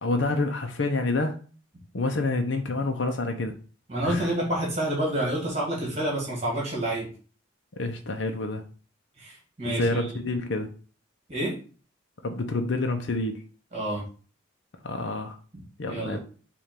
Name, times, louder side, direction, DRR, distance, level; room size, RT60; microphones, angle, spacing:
voice 1, 0.0-1.4 1.9-3.5 4.0-4.3 7.8-8.7 9.6-10.7 12.2-13.4 14.8-15.4 15.8-16.2, left 2 dB, 65° left, 4 dB, 0.7 m, -28 dB
voice 2, 3.9-7.1 9.2-10.0 11.3-11.5 13.7-14.0 15.9-16.2, right 1 dB, 30° right, -4 dB, 2.3 m, -28 dB
7.2 x 2.6 x 5.2 m, 0.39 s
head